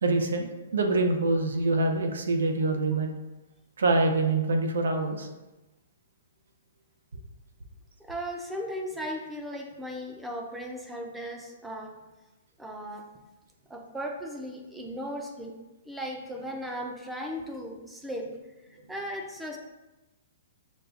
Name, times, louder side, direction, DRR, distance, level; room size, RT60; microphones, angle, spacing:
voice 1, 0.0-3.1 3.8-5.3, right 2 dB, 90° right, 4 dB, 0.6 m, -25 dB
voice 2, 8.0-12.0 12.6-13.1 13.7-15.5 15.9-18.3 18.9-19.6, equal, 5° right, 2 dB, 0.5 m, -36 dB
6.2 x 2.3 x 2.5 m, 1.0 s
hypercardioid pair, 155°, 0 cm